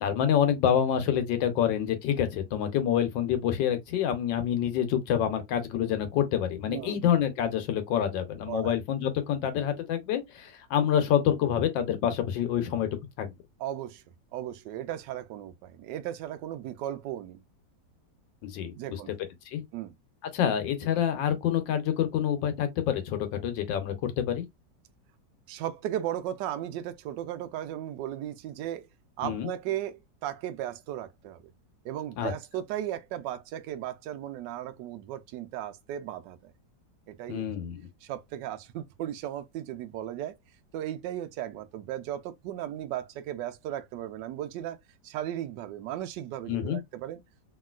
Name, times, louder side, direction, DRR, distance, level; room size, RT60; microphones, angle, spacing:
voice 1, 0.0-12.9 13.2-13.3 18.4-18.7 19.5-19.6 20.3-24.4 29.2-29.5 32.2-32.3 37.3-37.9 46.5-46.8, left 9 dB, 85° left, 1.5 m, -27 dB
voice 2, 6.7-7.0 8.5-8.7 13.6-14.0 14.3-17.4 18.7-19.1 19.7-19.9 25.5-28.9 29.2-31.4 31.8-36.5 37.1-37.4 38.0-40.4 40.7-44.8 45.0-47.2, right 12 dB, 80° right, 1.2 m, -36 dB
3.0 x 2.8 x 2.3 m
omnidirectional pair, 2.0 m